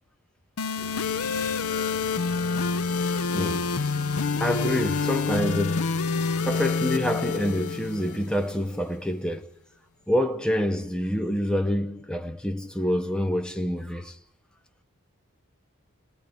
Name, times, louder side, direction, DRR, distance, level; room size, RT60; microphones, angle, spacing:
sound 1, 0.6-8.6, left 4 dB, 90° left, 0.7 m, -27 dB
sound 2, 0.8-7.1, left 4 dB, 40° left, 1.5 m, -41 dB
voice 1, 3.3-3.7 4.4-5.9 6.4-9.5 10.1-14.1, equal, 5° left, 0.9 m, -27 dB
30.0 x 17.5 x 5.4 m
head